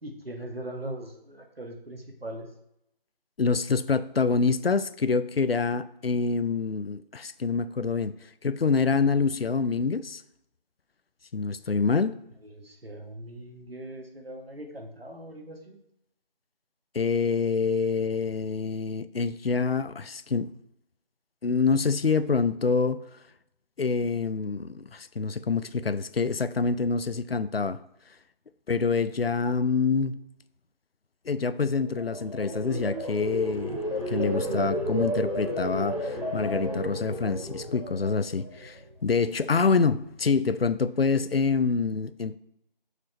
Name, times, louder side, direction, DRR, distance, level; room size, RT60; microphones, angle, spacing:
voice 1, 0.0-2.5 12.5-15.8, right 1 dB, 85° right, 2 dB, 1.6 m, -40 dB
voice 2, 3.4-8.1 8.4-10.2 11.3-12.2 16.9-20.5 21.4-23.0 23.8-27.8 28.7-30.2 31.3-33.8 34.1-42.4, left 4 dB, 80° left, 14 dB, 0.5 m, -26 dB
sound 1, 31.7-38.9 39.3-39.7, equal, 35° left, 1.6 m, -32 dB
6.7 x 4.9 x 4.2 m, 0.80 s
figure-of-eight pair, 175°, 29 cm